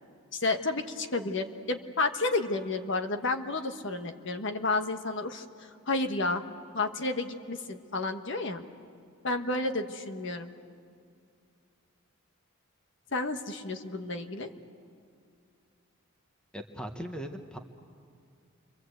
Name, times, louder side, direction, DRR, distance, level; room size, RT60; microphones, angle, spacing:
voice 1, 0.3-6.4 6.7-8.6 9.2-10.5 13.1-14.5, left 3 dB, 60° left, 6 dB, 1.3 m, -31 dB
voice 2, 16.5-17.6, equal, 5° left, 5 dB, 1.1 m, -39 dB
28.5 x 24.0 x 8.1 m, 2.3 s
head